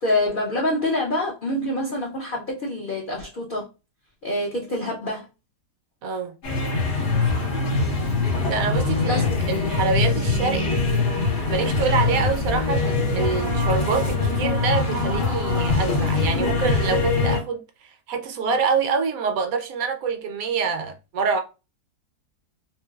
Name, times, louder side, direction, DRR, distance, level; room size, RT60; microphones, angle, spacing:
voice 1, 0.0-3.7 4.2-5.3 9.1-9.4, left 1 dB, 60° left, 0.5 m, -26 dB
voice 2, 6.0-6.4 8.5-10.8 11.5-21.4, right 5 dB, 70° right, 1.0 m, -26 dB
sound 1, 6.4-17.4, left 3 dB, 85° left, 1.8 m, -23 dB
3.8 x 2.3 x 2.3 m
omnidirectional pair, 1.7 m